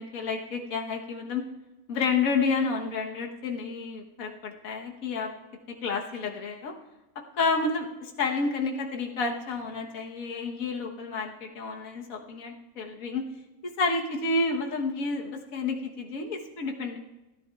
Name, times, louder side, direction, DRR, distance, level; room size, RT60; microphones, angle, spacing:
voice 1, 0.0-1.4 1.9-5.3 5.8-6.7 7.3-13.2 13.6-17.0, left 4 dB, 70° left, 2 dB, 1.5 m, -30 dB
29.5 x 10.5 x 2.3 m, 1.0 s
omnidirectional pair, 1.5 m